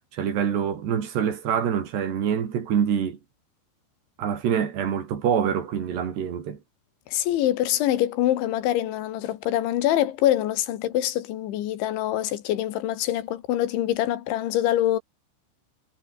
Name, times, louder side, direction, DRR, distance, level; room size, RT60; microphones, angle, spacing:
voice 1, 0.1-3.2 4.2-6.6, right 8 dB, 65° right, 5.3 m, -25 dB
voice 2, 7.1-15.0, left 13 dB, 80° left, 4.1 m, -24 dB
omnidirectional pair, 5.3 m